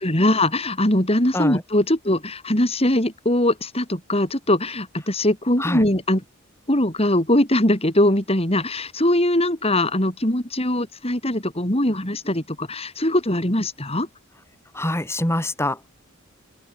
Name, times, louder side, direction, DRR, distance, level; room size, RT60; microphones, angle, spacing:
voice 1, 0.0-6.2 6.7-14.1, left 1 dB, 30° left, 5.3 m, -21 dB
voice 2, 14.7-15.9, left 1 dB, 10° left, 5.3 m, -25 dB
open air
head